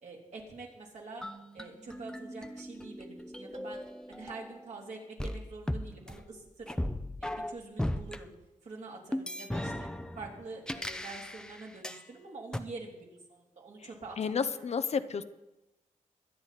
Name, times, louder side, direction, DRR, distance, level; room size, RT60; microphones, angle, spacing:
voice 1, 0.0-1.2 1.5-3.8 4.1-6.8 7.2-8.3 8.6-9.9 10.2-14.4, right 3 dB, 60° right, -1 dB, 3.3 m, -46 dB
sound 1, 1.2-4.7 5.2-8.2 9.1-12.0 12.5-12.6, left 1 dB, 5° left, 0.7 m, -37 dB
voice 2, 14.2-15.2, left 6 dB, 50° left, 11 dB, 0.7 m, -31 dB
22.5 x 9.3 x 4.2 m, 0.98 s
cardioid pair, 100°, 14 cm